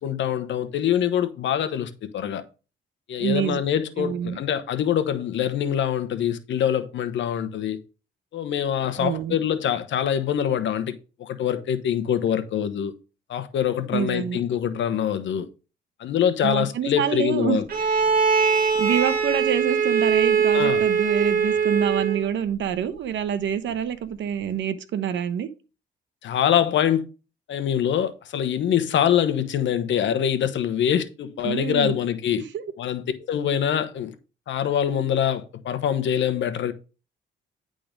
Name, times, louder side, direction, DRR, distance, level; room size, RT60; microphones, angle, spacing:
voice 1, 0.0-2.4 3.1-7.8 8.3-10.9 11.2-12.9 13.3-15.5 16.0-17.6 20.5-20.8 26.2-27.0 27.5-32.4 32.8-34.1 34.5-36.7, left 9 dB, 70° left, 1.0 m, -24 dB
voice 2, 3.2-3.6 4.0-4.4 9.0-9.4 13.9-14.4 16.4-17.6 18.8-25.5 31.4-31.9 32.4-32.6, right 8 dB, 70° right, 1.0 m, -26 dB
Bowed string instrument, 17.7-22.3, right 6 dB, 50° right, 2.2 m, -21 dB
10.5 x 3.9 x 5.1 m
cardioid pair, 90°, 20 cm